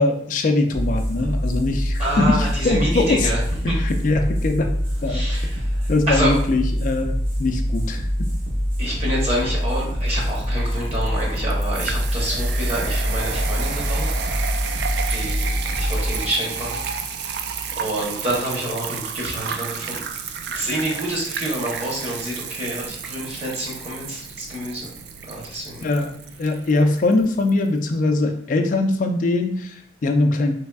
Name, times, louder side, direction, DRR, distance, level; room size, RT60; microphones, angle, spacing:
voice 1, 0.0-3.3 3.6-4.7 5.0-5.3 5.9-8.1 25.8-30.5, left 2 dB, 45° left, 5 dB, 0.3 m, -22 dB
sound 1, 0.7-17.8, equal, 90° right, 0.9 m, -25 dB
voice 2, 2.0-3.4 3.7-3.8 5.1-6.3 8.8-14.1 15.1-16.8 17.7-20.0 20.5-24.9 25.2-25.8, right 1 dB, 35° right, -4 dB, 0.8 m, -27 dB
sound 2, 9.6-27.6, right 6 dB, 60° right, 0.3 m, -32 dB
3.4 x 3.2 x 2.2 m, 0.66 s
head